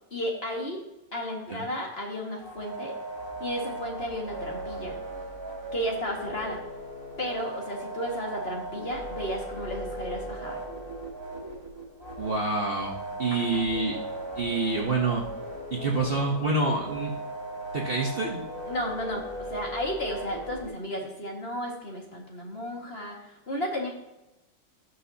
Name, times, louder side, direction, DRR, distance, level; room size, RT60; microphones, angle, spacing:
voice 1, 0.1-0.8 1.1-2.9 3.4-5.0 5.7-6.6 7.2-10.6 13.3-13.6 18.7-23.2 23.5-23.9, equal, 35° left, 0 dB, 2.0 m, -33 dB
sound 1, 2.4-20.7, right 1 dB, 15° right, 2.2 m, -37 dB
voice 2, 12.2-14.0 14.3-15.3 15.7-17.1 17.7-18.4, right 3 dB, 40° right, -1 dB, 1.1 m, -27 dB
18.0 x 6.2 x 2.8 m, 0.93 s
omnidirectional pair, 1.9 m